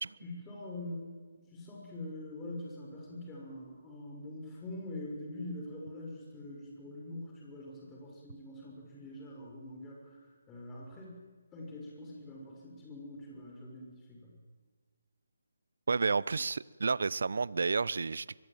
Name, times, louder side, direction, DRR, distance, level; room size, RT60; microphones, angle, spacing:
voice 1, 0.2-14.4, left 1 dB, 15° left, 6.4 m, -44 dB
voice 2, 15.9-18.4, right 4 dB, 65° right, 0.8 m, -31 dB
23.5 x 22.5 x 9.1 m
figure-of-eight pair, 160°, 0 cm